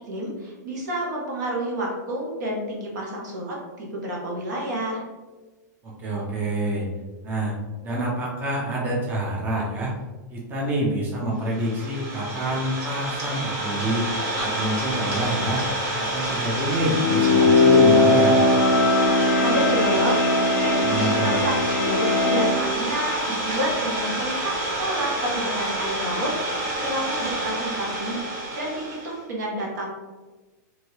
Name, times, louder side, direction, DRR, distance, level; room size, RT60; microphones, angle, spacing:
voice 1, 0.1-5.0 19.4-24.5 24.8-29.9, right 1 dB, 70° right, -2 dB, 1.1 m, -29 dB
voice 2, 5.8-6.9 7.2-7.6 7.8-9.9 10.3-14.1 14.4-15.6 16.0-18.4 20.8-21.4, right 1 dB, 20° right, -3 dB, 0.5 m, -27 dB
Idling, 11.5-29.2, right 1 dB, 55° right, 1.3 m, -28 dB
sound 1, 16.9-22.6, left 2 dB, 65° left, 0.4 m, -19 dB
3.0 x 2.7 x 2.9 m, 1.3 s
supercardioid pair, 150°, 10 cm